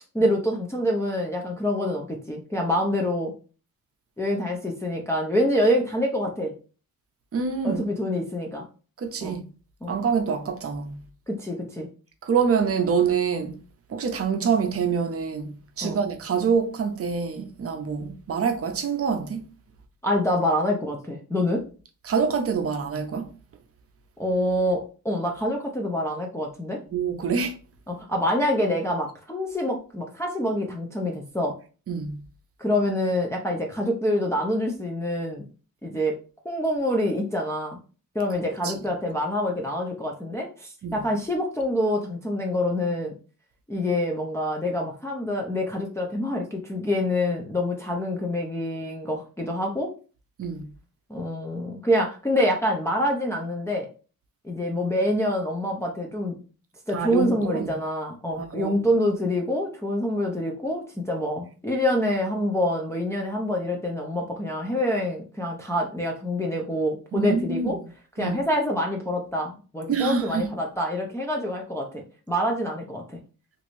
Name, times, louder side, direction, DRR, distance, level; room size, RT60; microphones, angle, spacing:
voice 1, 0.1-3.3 4.2-6.5 7.6-8.7 9.2-9.4 9.8-9.9 11.3-11.9 15.8-16.0 20.0-21.6 24.2-26.8 27.9-31.6 32.6-35.5 35.8-36.1 36.4-37.8 38.1-43.1 43.7-49.9 51.1-53.9 54.4-56.3 56.9-67.8 68.2-73.2, left 1 dB, 10° left, 0.5 m, -26 dB
voice 2, 7.3-7.9 9.0-9.4 9.9-11.0 12.2-13.6 13.9-19.4 22.1-23.3 26.9-27.5 31.9-32.2 38.6-38.7 40.8-41.0 50.4-50.7 56.9-57.7 58.3-58.7 67.1-67.8 68.2-68.4 69.9-70.5, right 6 dB, 40° right, 0.6 m, -26 dB
3.0 x 2.6 x 3.0 m
wide cardioid pair, 125°, 35 cm